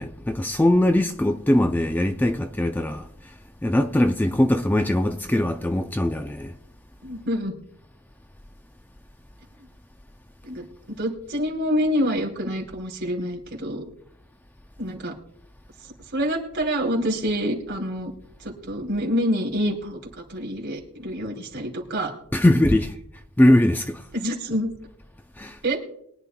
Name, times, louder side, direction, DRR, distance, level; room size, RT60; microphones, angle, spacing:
voice 1, 0.0-3.3 3.6-6.6 22.3-23.0 23.4-24.1 25.4-25.6, left 1 dB, 10° left, 0.4 m, -21 dB
voice 2, 7.0-7.5 10.4-13.8 14.8-15.1 16.1-18.1 18.4-20.0 20.3-22.1 24.1-24.7 25.6-25.8, equal, 50° right, 3.0 m, -27 dB
23.0 x 9.9 x 2.3 m
head